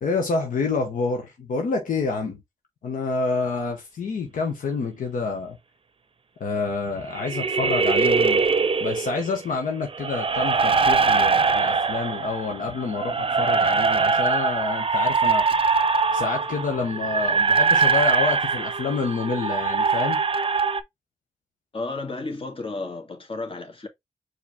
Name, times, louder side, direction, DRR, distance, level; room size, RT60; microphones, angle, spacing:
voice 1, 0.0-2.4 2.8-5.6 6.4-8.4 8.8-15.4 16.1-20.2, left 4 dB, 85° left, 1.0 m, -28 dB
sound 1, 7.2-9.3 9.9-20.8, right 4 dB, 40° right, 0.6 m, -22 dB
voice 2, 21.7-23.9, left 3 dB, 45° left, 1.8 m, -32 dB
4.8 x 3.1 x 3.4 m
cardioid pair, 40°, 13 cm